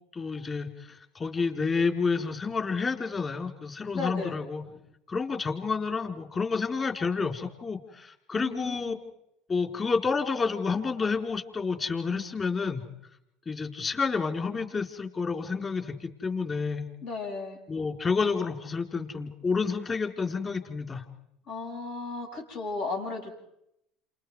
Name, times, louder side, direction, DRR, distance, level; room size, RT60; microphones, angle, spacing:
voice 1, 0.1-4.6 5.1-8.9 9.5-12.8 13.5-16.9 17.7-21.0, left 4 dB, 30° left, 5 dB, 3.8 m, -29 dB
voice 2, 3.9-4.3 8.3-9.0 17.0-17.6 21.5-23.3, left 3 dB, 75° left, -1 dB, 7.9 m, -35 dB
29.5 x 27.5 x 4.8 m, 0.80 s
supercardioid pair, 90°, 0 cm